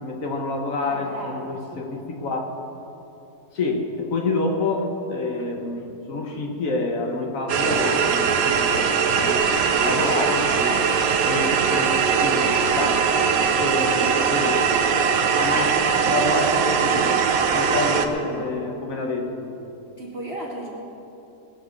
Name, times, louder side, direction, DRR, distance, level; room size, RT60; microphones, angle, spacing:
voice 1, 0.0-2.4 3.5-10.9 11.2-13.0 13.6-14.7 15.4-17.2 17.5-19.6, left 2 dB, 60° left, 2 dB, 1.7 m, -28 dB
voice 2, 0.8-2.1 13.8-14.1 18.2-18.4 20.0-20.7, right 1 dB, 40° right, -4 dB, 2.9 m, -36 dB
sound 1, 7.5-18.1, right 6 dB, 70° right, 1.2 m, -21 dB
19.5 x 7.6 x 6.8 m, 2.9 s
omnidirectional pair, 1.6 m